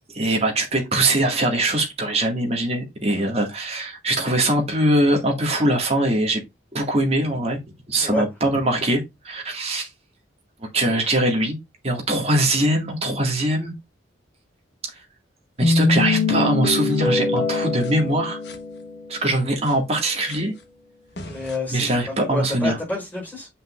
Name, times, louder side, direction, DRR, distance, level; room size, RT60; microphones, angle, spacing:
voice 1, 0.1-6.4 6.7-7.6 7.9-9.9 10.6-11.6 11.8-13.7 14.9-15.0 15.6-18.4 19.1-20.5 21.7-22.8, right 1 dB, 30° right, 2.0 m, -22 dB
sound 1, 15.6-19.2 19.7-19.8 20.3-20.4 21.2-21.5, left 3 dB, 55° left, 1.2 m, -23 dB
voice 2, 21.2-23.5, left 2 dB, 10° left, 4.5 m, -29 dB
7.8 x 5.5 x 2.5 m
head